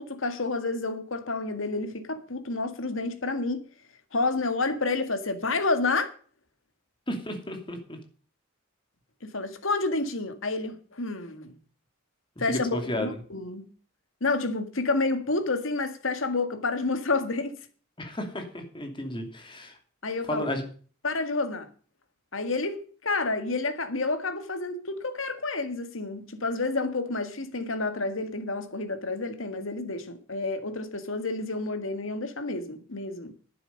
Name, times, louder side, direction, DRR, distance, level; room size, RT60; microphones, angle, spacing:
voice 1, 0.0-3.6 4.1-6.1 9.2-11.6 12.4-13.7 14.2-17.6 20.0-20.5 21.0-21.7 22.3-33.3, left 3 dB, 70° left, 1.9 m, -29 dB
voice 2, 7.1-8.0 12.5-13.2 18.0-19.8 20.3-20.6, left 1 dB, 25° left, 2.7 m, -33 dB
11.5 x 9.8 x 5.3 m
head